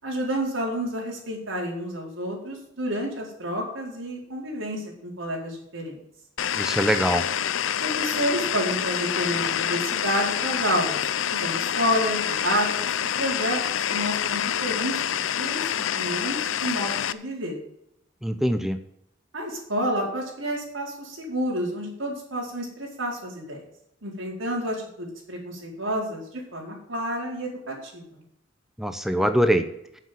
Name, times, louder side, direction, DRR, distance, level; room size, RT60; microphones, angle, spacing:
voice 1, 0.0-6.0 7.8-11.0 11.3-13.6 13.9-15.7 16.0-17.6 19.3-23.6 24.0-28.2, equal, 85° right, -1 dB, 4.5 m, -30 dB
sound 1, 6.4-17.1, left 9 dB, 90° left, 0.6 m, -27 dB
voice 2, 6.6-7.3 18.2-18.8 28.8-29.7, equal, ahead, 8 dB, 0.7 m, -23 dB
9.4 x 7.5 x 7.5 m, 0.76 s
head